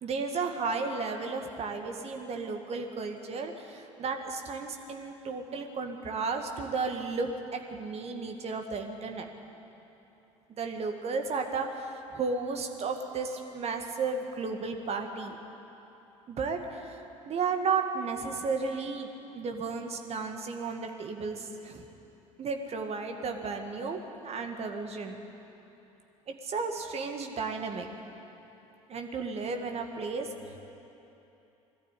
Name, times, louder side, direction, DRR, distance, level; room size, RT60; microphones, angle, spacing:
voice 1, 0.0-9.3 10.5-15.4 16.3-19.1 19.3-21.9 22.4-25.2 26.3-27.9 28.9-30.3, right 4 dB, 40° right, 4 dB, 2.0 m, -33 dB
21.5 x 14.0 x 8.5 m, 3.0 s
figure-of-eight pair, 60°, 17 cm